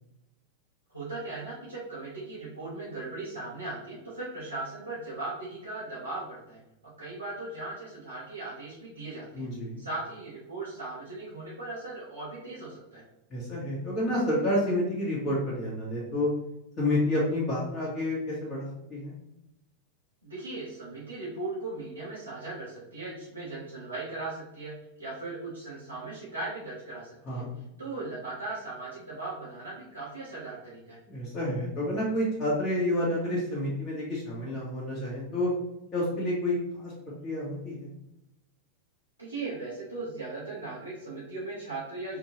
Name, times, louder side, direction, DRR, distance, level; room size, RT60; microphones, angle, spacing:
voice 1, 0.9-6.6 7.0-9.5 9.8-13.0 20.2-27.4 27.8-31.0 39.2-42.2, right 2 dB, 90° right, -11 dB, 1.3 m, -38 dB
voice 2, 9.3-9.8 13.3-16.3 16.8-19.1 27.3-27.5 31.1-35.5 35.9-36.9 37.2-37.9, left 1 dB, 30° left, -7 dB, 1.5 m, -29 dB
5.0 x 2.8 x 3.2 m, 0.85 s
figure-of-eight pair, 90°, 0 cm